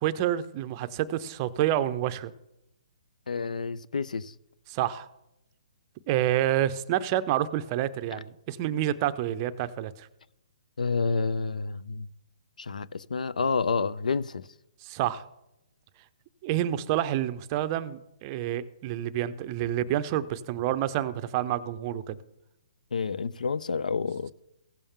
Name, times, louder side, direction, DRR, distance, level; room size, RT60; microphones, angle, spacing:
voice 1, 0.0-2.3 4.7-5.1 6.1-10.1 14.8-15.2 16.4-22.2, right 12 dB, 30° right, 0.5 m, -28 dB
voice 2, 3.3-4.3 10.8-12.1 12.6-14.5 22.9-24.3, left 4 dB, 90° left, 0.4 m, -29 dB
16.0 x 7.0 x 3.6 m
hypercardioid pair, 150°, 4 cm